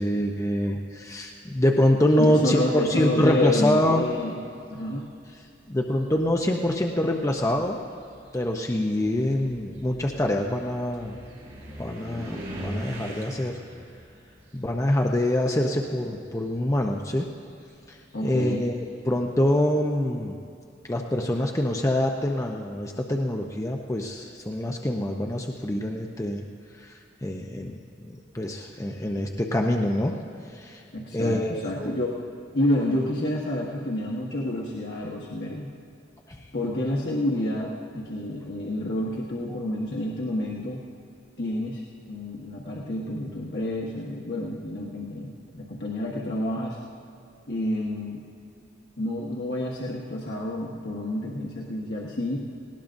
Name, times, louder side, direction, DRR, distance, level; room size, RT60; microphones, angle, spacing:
voice 1, 0.0-4.0 5.7-7.8 8.3-11.2 11.8-13.6 14.5-17.3 17.9-18.0 18.2-18.8 19.0-20.4 20.9-26.4 26.8-26.9 27.2-27.8 28.1-30.2 30.5-30.8 31.1-32.0 39.5-39.6, left 1 dB, 20° left, 1 dB, 0.7 m, -25 dB
voice 2, 2.2-4.4 4.7-5.0 18.1-18.7 30.9-32.1 32.5-35.7 36.5-40.8 41.4-41.8 42.1-46.8 47.5-48.2 49.0-52.4, left 1 dB, 70° left, -4 dB, 1.4 m, -29 dB
sound 1, 4.0-4.4 5.4-5.5 6.0-15.9 16.2-18.8, equal, 35° right, 3.7 m, -42 dB
19.0 x 17.5 x 2.6 m, 2.6 s
head